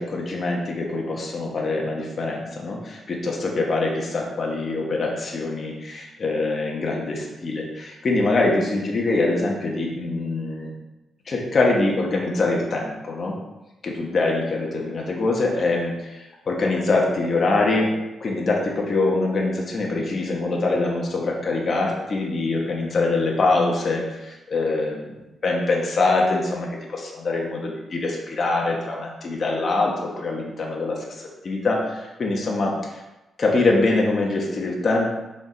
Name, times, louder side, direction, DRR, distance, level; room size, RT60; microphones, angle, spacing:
voice 1, 0.0-10.7 11.3-13.3 13.8-17.9 18.2-33.0 33.4-35.1, left 3 dB, 40° left, -2 dB, 1.3 m, -24 dB
5.2 x 4.8 x 3.9 m, 1.0 s
cardioid pair, 110°, 0 cm